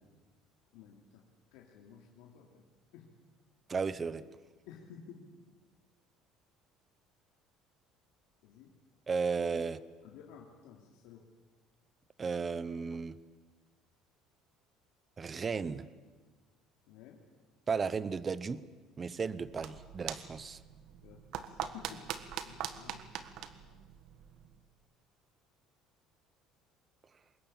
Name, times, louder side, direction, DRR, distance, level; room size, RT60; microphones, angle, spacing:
voice 1, 0.7-2.7 2.9-3.1 4.7-5.3 8.4-8.7 9.6-9.7 10.0-11.3 16.8-17.2 21.0-22.1 22.4-23.4 23.6-23.9, left 8 dB, 80° left, -1 dB, 2.9 m, -54 dB
voice 2, 3.7-4.2 9.1-9.8 12.2-13.2 15.2-15.8 17.7-18.6 19.0-20.6, right 5 dB, 20° right, 16 dB, 0.8 m, -34 dB
sound 1, 19.3-24.6, right 9 dB, 60° right, 1.7 m, -43 dB
24.5 x 21.0 x 8.9 m, 1.4 s
cardioid pair, 155°, 0 cm